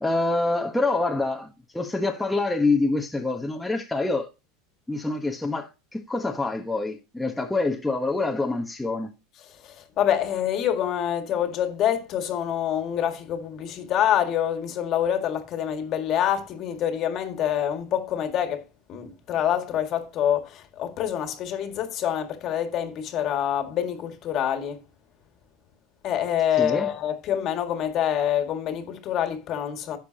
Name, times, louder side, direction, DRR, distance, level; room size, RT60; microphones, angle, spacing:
voice 1, 0.0-4.3 4.9-9.1 26.6-26.9, left 3 dB, 5° left, 1.0 m, -26 dB
voice 2, 9.6-18.6 18.9-24.8 26.0-30.0, left 10 dB, 40° left, 1.8 m, -26 dB
11.0 x 7.1 x 2.8 m
supercardioid pair, 140°, 0 cm